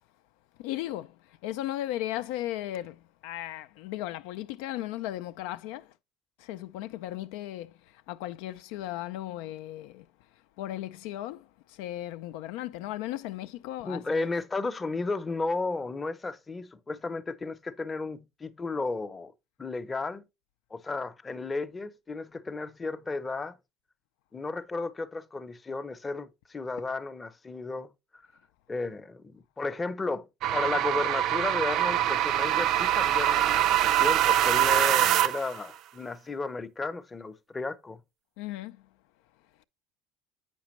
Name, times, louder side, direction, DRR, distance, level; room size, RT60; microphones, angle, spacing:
voice 1, 0.6-5.9 6.4-10.1 10.6-14.3 38.4-38.8, left 14 dB, 80° left, 0.3 m, -36 dB
voice 2, 13.8-19.3 19.6-20.2 20.7-23.6 24.3-27.9 28.7-30.3 30.5-38.0, left 3 dB, 20° left, 0.6 m, -33 dB
sound 1, 30.4-35.6, right 12 dB, 55° right, 0.5 m, -24 dB
8.1 x 6.0 x 3.0 m
cardioid pair, 120°, 0 cm